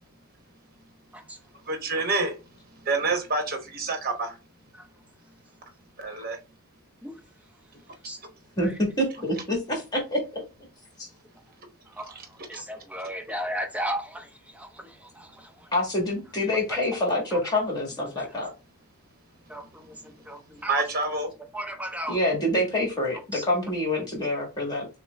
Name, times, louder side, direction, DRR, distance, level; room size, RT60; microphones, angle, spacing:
voice 1, 1.7-2.4 2.8-4.4 6.0-6.4 12.5-12.6 19.9-20.0 20.7-21.3, right 3 dB, 40° right, 1.0 m, -27 dB
voice 2, 9.0-9.6 9.9-10.4 15.7-18.5 22.1-24.9, left 1 dB, 15° left, 1.5 m, -26 dB
voice 3, 12.5-14.3 14.5-15.5 18.2-18.3 19.5-19.9 20.3-20.8 21.5-22.2 23.3-23.4, equal, 5° right, 0.7 m, -34 dB
5.9 x 2.1 x 3.3 m
head